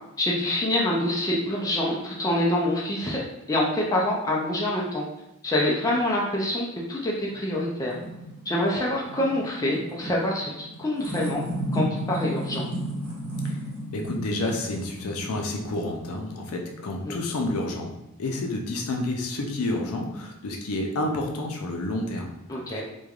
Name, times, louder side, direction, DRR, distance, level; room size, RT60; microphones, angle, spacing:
voice 1, 0.2-3.2 3.5-5.0 5.4-8.0 8.5-11.4 11.7-12.6 17.1-17.2 22.5-22.8, left 1 dB, 15° left, -4 dB, 0.4 m, -26 dB
sound 1, 7.3-17.4, right 1 dB, 65° right, 0.8 m, -34 dB
voice 2, 13.9-22.3 22.7-22.8, left 2 dB, 80° left, 2 dB, 0.5 m, -29 dB
3.1 x 2.2 x 2.4 m, 0.89 s
head